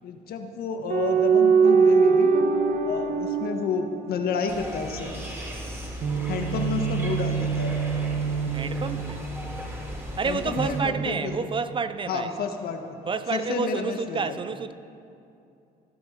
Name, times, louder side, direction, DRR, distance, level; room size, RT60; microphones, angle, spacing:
voice 1, 0.0-2.3 2.8-5.3 6.3-7.7 10.2-11.5 12.1-13.0 13.3-14.4, left 5 dB, 65° left, 5 dB, 1.6 m, -30 dB
sound 1, 0.9-4.6 6.0-9.8 10.6-11.8, right 5 dB, 50° right, 1.4 m, -23 dB
sound 2, 4.5-10.8, equal, 15° right, 3.3 m, -37 dB
voice 2, 8.5-9.2 10.2-12.4 13.1-14.7, right 5 dB, 30° right, 12 dB, 0.6 m, -29 dB
20.5 x 11.5 x 5.2 m, 2.6 s
cardioid pair, 110°, 17 cm